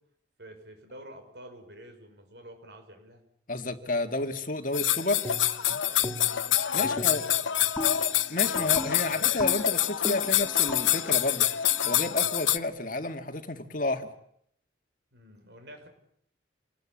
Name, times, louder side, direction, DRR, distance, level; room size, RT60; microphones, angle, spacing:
voice 1, 0.4-3.2 5.8-6.1 6.7-7.6 8.3-9.4 15.1-15.9, right 1 dB, 65° right, 6 dB, 6.4 m, -49 dB
voice 2, 3.5-5.2 6.7-7.2 8.3-14.1, left 2 dB, 45° left, 7 dB, 2.0 m, -31 dB
sound 1, 4.7-12.6, left 12 dB, 85° left, 1.0 m, -26 dB
sound 2, 5.2-5.7 6.0-6.5 6.8-12.7, equal, 15° left, 2.5 m, -39 dB
28.0 x 20.5 x 8.8 m, 0.70 s
head